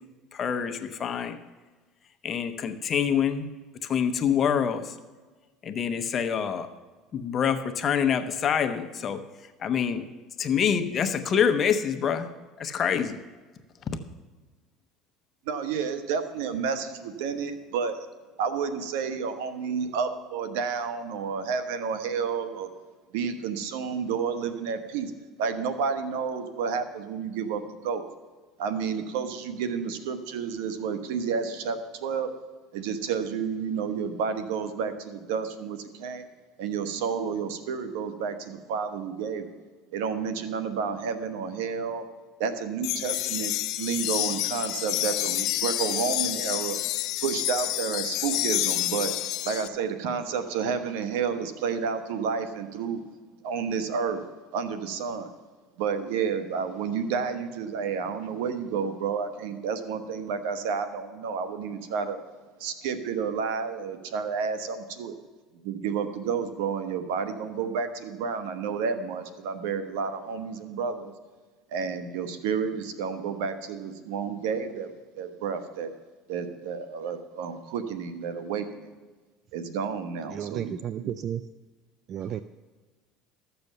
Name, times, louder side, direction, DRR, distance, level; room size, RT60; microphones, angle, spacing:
voice 1, 0.3-1.4 2.2-3.5 3.8-4.9 5.6-6.7 7.1-9.2 9.6-10.0 10.4-12.3 12.6-13.2, left 7 dB, 35° left, 8 dB, 1.0 m, -26 dB
voice 2, 15.4-18.0 18.4-22.7 23.1-25.1 25.4-28.0 28.6-32.3 32.7-36.2 36.6-39.5 39.9-42.0 42.4-46.8 47.2-53.0 53.4-54.2 54.5-55.3 55.8-62.2 62.6-65.2 65.6-71.1 71.7-74.9 75.1-75.9 76.3-78.9 79.5-81.1, right 6 dB, 85° right, 10 dB, 1.2 m, -30 dB
sound 1, 42.8-49.7, left 16 dB, 65° left, 0.4 m, -29 dB
voice 3, 80.3-81.4 82.1-82.4, right 9 dB, 45° right, 14 dB, 0.4 m, -32 dB
13.5 x 6.9 x 6.7 m, 1.3 s
supercardioid pair, 115°, 0 cm